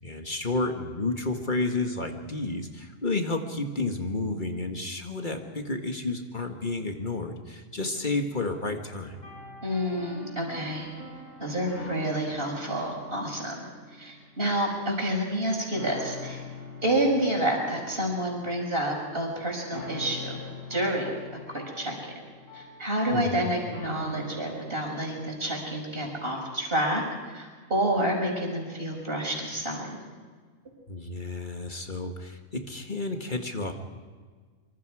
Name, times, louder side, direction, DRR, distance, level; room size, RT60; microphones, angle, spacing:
voice 1, 0.0-9.2 23.1-23.5 30.9-33.7, left 2 dB, 35° left, 4 dB, 1.8 m, -31 dB
sound 1, 9.0-15.4 15.7-24.8, left 2 dB, 70° left, 7.2 m, -44 dB
voice 2, 9.6-10.9 11.4-13.6 13.9-16.4 16.8-20.4 20.7-21.1 21.5-22.1 22.5-29.9, right 1 dB, 45° right, 1 dB, 5.7 m, -29 dB
25.5 x 25.5 x 4.9 m, 1.5 s
omnidirectional pair, 1.4 m